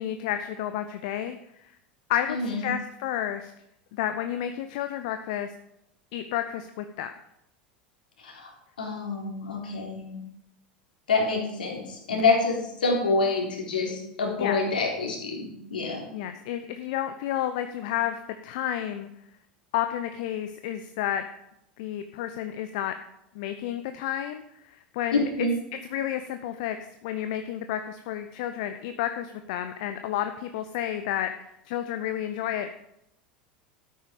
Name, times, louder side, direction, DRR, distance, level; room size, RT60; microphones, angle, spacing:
voice 1, 0.0-1.7 2.1-3.5 3.9-5.5 6.1-7.1 12.1-12.2 14.4-14.6 16.1-19.1 19.7-21.3 21.8-22.9 23.3-25.3 25.9-31.3 31.7-32.7, left 11 dB, 55° left, 9 dB, 0.8 m, -31 dB
voice 2, 2.3-2.7 8.2-8.5 8.8-10.2 11.1-16.0 25.4-25.6, left 3 dB, 70° left, 0 dB, 3.5 m, -27 dB
13.0 x 9.3 x 5.1 m, 0.80 s
figure-of-eight pair, 80°, 5 cm